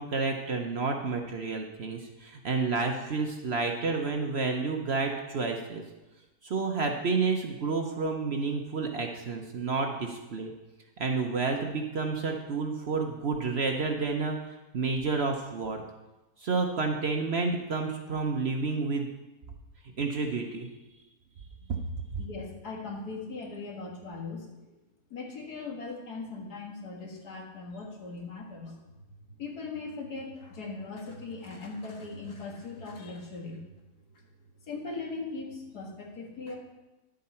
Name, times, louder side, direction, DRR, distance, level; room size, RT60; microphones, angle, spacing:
voice 1, 0.0-5.8 6.4-10.5 11.0-14.4 14.7-15.8 16.4-19.1 20.0-20.7 21.7-21.8, right 4 dB, 50° right, 3 dB, 0.9 m, -30 dB
voice 2, 22.2-24.7 25.1-28.8 29.4-33.6 34.1-34.2 34.7-36.6, left 3 dB, 75° left, 0 dB, 2.2 m, -39 dB
10.5 x 7.7 x 4.3 m, 1.0 s
omnidirectional pair, 1.7 m